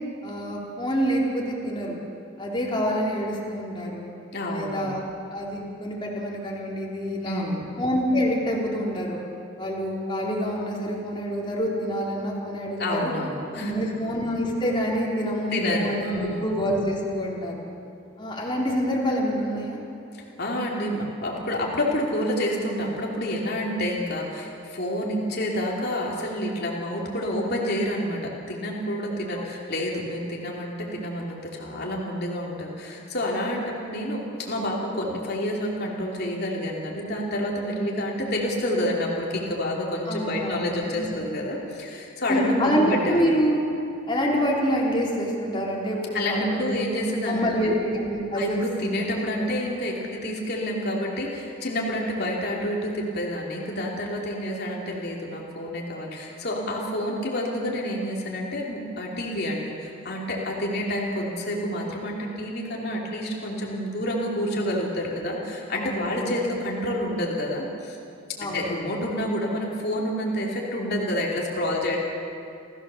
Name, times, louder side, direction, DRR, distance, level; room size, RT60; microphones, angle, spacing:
voice 1, 0.2-2.0 2.4-4.1 4.5-5.0 5.3-7.4 7.8-9.2 9.6-13.1 13.5-17.6 18.2-19.8 29.3-29.5 40.1-40.7 41.0-41.3 42.3-43.6 44.1-46.8 47.3-48.6 49.4-49.5 65.7-66.3 68.4-68.8, equal, 25° left, -3 dB, 3.9 m, -26 dB
voice 2, 4.3-4.9 7.2-7.7 12.8-13.9 15.5-16.5 20.1-43.2 46.1-47.7 48.3-68.0 68.4-72.0, left 1 dB, 55° left, -3 dB, 3.1 m, -28 dB
28.5 x 16.0 x 7.0 m, 2.6 s
head